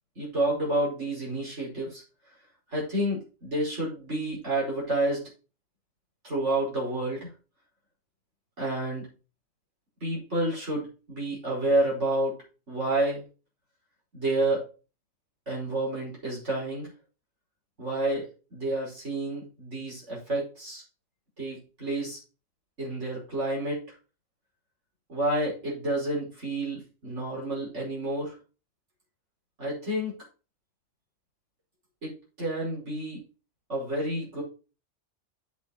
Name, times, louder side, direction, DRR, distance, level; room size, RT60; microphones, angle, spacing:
voice 1, 0.2-2.0 2.7-5.3 6.2-7.3 8.6-9.1 10.0-12.4 12.7-13.2 14.1-14.7 15.5-16.9 17.8-20.8 21.4-22.2 22.8-23.9 25.1-28.4 29.6-30.2 32.0-33.2 33.7-34.4, right 1 dB, 70° right, -4 dB, 5.6 m, -29 dB
8.0 x 6.5 x 4.1 m, 0.32 s
omnidirectional pair, 1.2 m